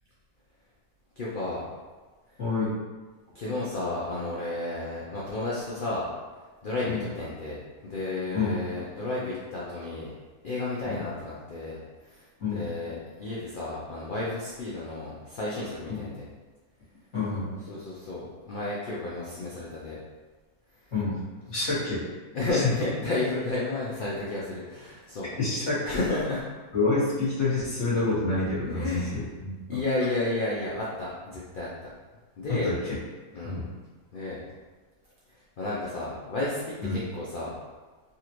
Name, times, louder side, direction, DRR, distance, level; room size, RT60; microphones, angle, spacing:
voice 1, 1.2-1.6 3.3-6.1 6.6-7.6 7.9-10.1 10.4-11.8 12.1-12.2 12.5-16.2 17.7-20.0 22.3-25.3 25.8-26.4 28.6-29.2 29.7-31.7 32.4-32.7 33.3-33.6 34.1-34.4 35.6-37.5, left 2 dB, 70° left, -6 dB, 0.5 m, -32 dB
voice 2, 2.4-2.7 6.8-7.0 8.3-8.6 10.8-11.0 12.4-12.6 15.9-16.0 17.1-17.5 20.9-21.2 21.5-22.0 22.5-22.7 25.4-26.0 26.7-29.8 32.5-33.0 33.4-33.7 36.8-37.0, left 3 dB, 50° left, -11 dB, 1.7 m, -28 dB
3.8 x 2.5 x 2.9 m, 1.3 s
omnidirectional pair, 1.6 m